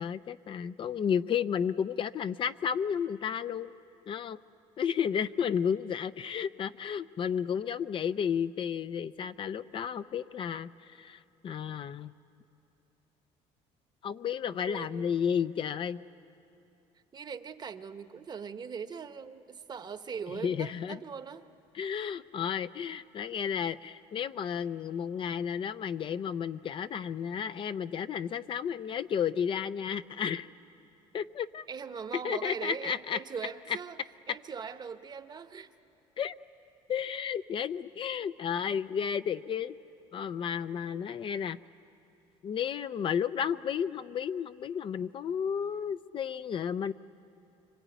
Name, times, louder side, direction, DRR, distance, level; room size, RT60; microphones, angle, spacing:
voice 1, 0.0-3.7 4.1-4.4 4.8-12.1 14.0-16.0 20.4-21.0 21.7-30.5 31.1-31.6 32.2-33.2 36.2-36.4 36.9-39.8 40.1-41.6 42.4-46.9, left 8 dB, 40° left, 12 dB, 0.6 m, -32 dB
voice 2, 14.7-15.1 17.1-21.5 31.7-34.0 34.3-35.7 40.9-41.0, right 6 dB, 35° right, 10 dB, 1.0 m, -40 dB
26.0 x 24.5 x 9.3 m, 2.8 s
cardioid pair, 115°, 13 cm